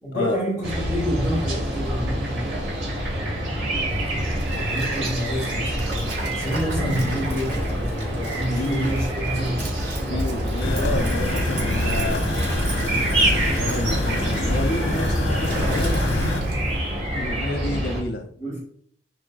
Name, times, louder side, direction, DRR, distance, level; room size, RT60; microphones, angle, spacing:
voice 1, 0.0-2.9 4.5-9.7 18.4-18.6, equal, 5° right, -10 dB, 3.1 m, -29 dB
sound 1, 0.6-18.0, right 1 dB, 80° right, 2.7 m, -26 dB
Stream, 3.9-17.0, right 2 dB, 60° right, 2.4 m, -37 dB
voice 2, 8.5-8.9 10.0-12.2 13.5-16.1 17.1-18.3, left 1 dB, 85° left, 5 dB, 0.8 m, -29 dB
sound 2, 10.6-16.4, left 1 dB, 65° left, 1.5 m, -25 dB
11.0 x 4.5 x 2.6 m, 0.64 s
head